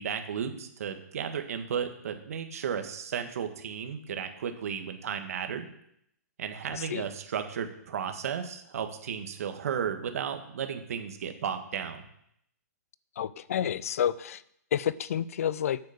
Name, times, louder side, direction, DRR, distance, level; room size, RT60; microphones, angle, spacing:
voice 1, 0.0-5.7 6.4-12.1, right 7 dB, 60° right, 7 dB, 1.5 m, -34 dB
voice 2, 6.8-7.1 13.2-14.4 14.7-15.8, left 9 dB, 60° left, 19 dB, 0.5 m, -29 dB
8.4 x 6.6 x 6.6 m, 0.74 s
hypercardioid pair, 165°, 9 cm